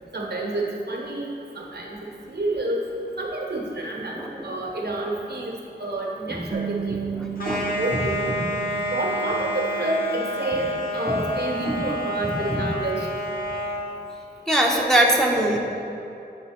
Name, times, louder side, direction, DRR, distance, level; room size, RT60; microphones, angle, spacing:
voice 1, 0.1-2.0 2.3-2.8 3.2-7.1 7.4-8.3 8.9-13.1, right 2 dB, 65° right, -1 dB, 1.0 m, -29 dB
Bass guitar, 6.5-12.8, right 8 dB, 45° right, 0.4 m, -37 dB
voice 2, 7.2-8.1 8.4-8.5 11.1-11.2 11.7-11.8 12.2-12.7 14.5-15.6, right 1 dB, 5° left, -1 dB, 0.7 m, -23 dB
sound 1, 7.4-13.9, equal, 55° left, 1.4 m, -29 dB
8.3 x 3.5 x 5.8 m, 2.8 s
wide cardioid pair, 65°, 18 cm